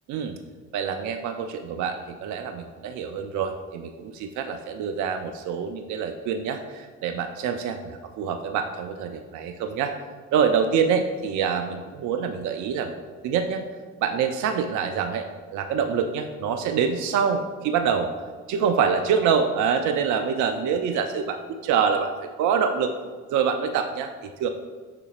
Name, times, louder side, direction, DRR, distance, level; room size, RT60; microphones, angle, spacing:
voice 1, 0.7-9.9 10.3-12.9 13.2-13.6 14.0-15.3 15.5-18.1 18.5-22.9 23.3-24.5, right 6 dB, 50° right, 6 dB, 0.6 m, -26 dB
6.6 x 6.0 x 2.5 m, 1.4 s
hypercardioid pair, 55°, 38 cm